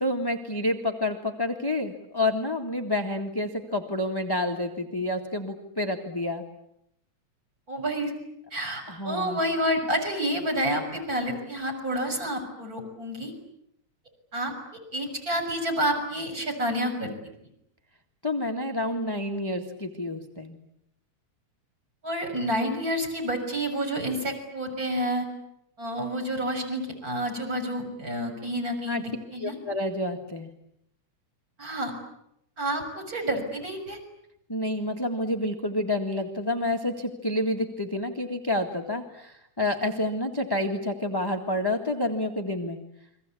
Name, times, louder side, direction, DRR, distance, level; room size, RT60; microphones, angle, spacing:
voice 1, 0.0-6.4 8.9-9.4 18.2-20.6 28.9-29.0 29.4-30.5 34.5-42.8, left 1 dB, 10° left, 4 dB, 1.2 m, -29 dB
voice 2, 7.7-8.1 8.5-13.3 14.3-14.5 14.9-17.1 22.0-25.3 25.8-29.5 31.6-31.9 32.6-34.0, equal, 30° right, 2 dB, 6.7 m, -29 dB
30.0 x 23.5 x 8.5 m, 0.78 s
omnidirectional pair, 3.4 m